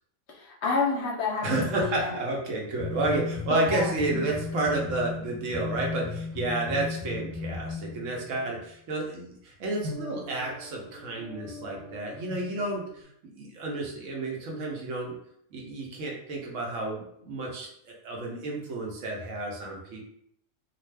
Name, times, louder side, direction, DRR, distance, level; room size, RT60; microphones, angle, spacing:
voice 1, 0.3-2.2 3.5-3.9, left 4 dB, 65° left, -2 dB, 0.8 m, -29 dB
voice 2, 1.4-13.1 13.3-15.1 15.5-20.0, right 2 dB, 70° right, -1 dB, 1.0 m, -31 dB
sound 1, 1.5-2.3 2.8-8.5 9.8-13.0, left 4 dB, 40° right, 0.7 m, -37 dB
2.5 x 2.3 x 3.2 m, 0.72 s
omnidirectional pair, 1.4 m